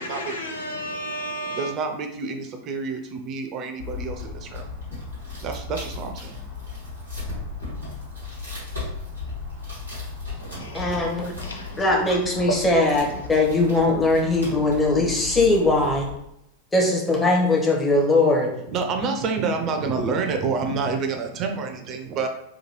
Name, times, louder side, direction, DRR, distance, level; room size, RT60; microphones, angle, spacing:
voice 1, 0.0-1.7 10.4-13.9, equal, 75° left, 0.5 m, -34 dB
voice 2, 1.5-4.7 5.4-6.4 18.7-22.3, right 4 dB, 35° right, 0.4 m, -28 dB
sound 1, 3.8-16.1, left 3 dB, 90° left, 1.4 m, -35 dB
voice 3, 10.7-11.3 11.8-16.1 16.7-18.5, left 2 dB, 15° left, 0.7 m, -20 dB
2.9 x 2.2 x 3.0 m
figure-of-eight pair, 90°, 0 cm